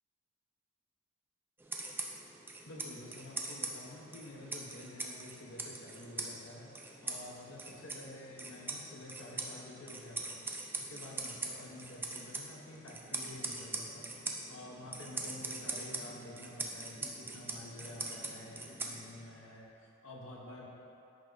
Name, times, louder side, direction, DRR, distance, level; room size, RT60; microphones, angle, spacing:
sound 1, 1.6-19.4, right 2 dB, 10° right, 0.4 m, -42 dB
voice 1, 2.7-14.1 14.5-20.7, left 1 dB, 75° left, -3 dB, 0.9 m, -49 dB
10.0 x 3.4 x 3.9 m, 2.9 s
head